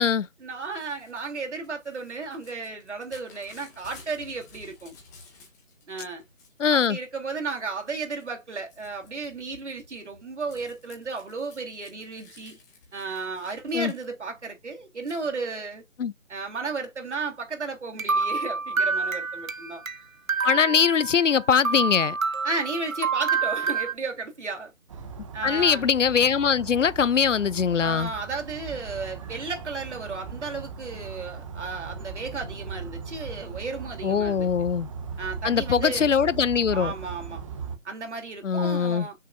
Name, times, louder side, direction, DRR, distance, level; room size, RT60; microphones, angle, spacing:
voice 1, 0.4-5.0 5.9-6.2 6.7-12.6 12.9-15.8 16.3-19.8 22.4-24.7 25.3-25.9 27.8-34.5 35.2-36.1 36.7-37.4 37.8-39.2, right 4 dB, 60° right, 3.5 m, -34 dB
Crumpling crinkling / Tearing, 0.6-5.8 6.2-7.0 7.5-7.9 8.2-14.4 15.0-15.3, left 3 dB, 15° left, 1.8 m, -53 dB
voice 2, 6.6-7.0 13.7-13.9 16.0-16.1 20.4-22.2 25.4-28.1 34.0-34.9 35.4-36.9 38.4-39.1, left 7 dB, 70° left, 0.6 m, -22 dB
sound 1, 18.0-20.0 20.3-21.3 21.7-23.9, right 4 dB, 90° right, 1.2 m, -27 dB
sound 2, 24.9-37.8, right 6 dB, 25° right, 1.6 m, -38 dB
6.9 x 6.6 x 2.6 m
figure-of-eight pair, 165°, 40 cm